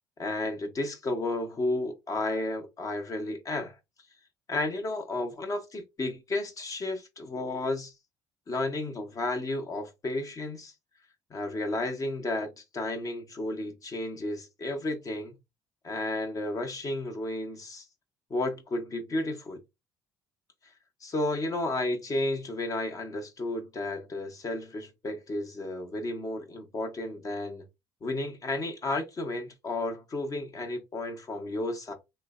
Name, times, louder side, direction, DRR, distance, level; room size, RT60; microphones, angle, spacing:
voice 1, 0.2-3.8 4.5-7.9 8.5-10.7 11.3-15.4 15.8-17.8 18.3-19.6 21.0-27.7 28.0-31.9, left 2 dB, 35° left, 0.8 m, -32 dB
3.1 x 2.1 x 2.4 m
hypercardioid pair, 60°, 10 cm